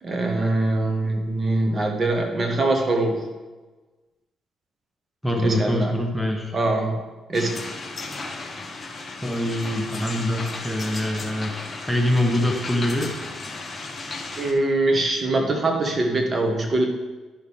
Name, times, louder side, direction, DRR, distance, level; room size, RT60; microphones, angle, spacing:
voice 1, 0.0-3.2 5.4-5.9 6.5-7.0 7.3-7.6 14.4-16.9, right 2 dB, 35° right, 2 dB, 1.6 m, -23 dB
voice 2, 5.2-6.5 9.2-11.5 11.8-13.2, left 1 dB, 5° left, 1 dB, 1.2 m, -24 dB
sound 1, 7.3-14.5, left 3 dB, 35° left, 1.4 m, -35 dB
11.5 x 6.5 x 3.7 m, 1.2 s
cardioid pair, 90°, 0 cm